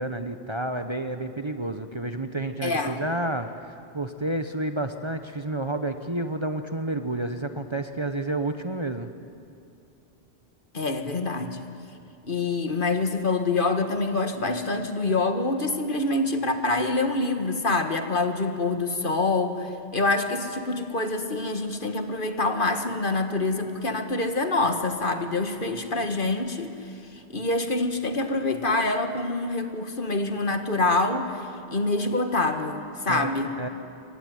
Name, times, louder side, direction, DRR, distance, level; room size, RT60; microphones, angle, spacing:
voice 1, 0.0-9.1 33.1-33.7, right 2 dB, 25° right, 7 dB, 1.1 m, -30 dB
voice 2, 2.6-3.0 10.7-11.6 12.2-26.7 27.1-33.5, left 3 dB, 50° left, 7 dB, 1.8 m, -26 dB
27.0 x 23.5 x 9.5 m, 2.6 s
omnidirectional pair, 1.1 m